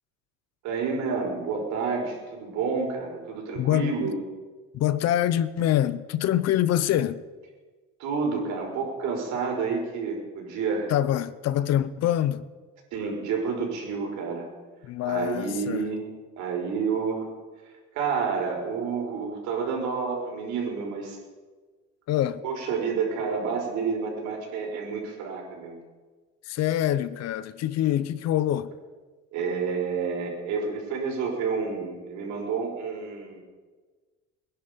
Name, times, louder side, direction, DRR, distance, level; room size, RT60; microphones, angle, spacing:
voice 1, 0.6-4.1 8.0-10.9 12.9-14.5 15.0-16.1 16.4-17.3 17.9-21.2 22.4-25.7 29.3-33.4, right 5 dB, 70° right, 5.4 m, -29 dB
voice 2, 3.5-4.1 4.7-7.2 10.9-12.5 14.8-15.9 22.1-22.4 26.4-28.7, left 12 dB, 55° left, 0.8 m, -25 dB
23.0 x 10.5 x 5.3 m
cardioid pair, 120°, 30 cm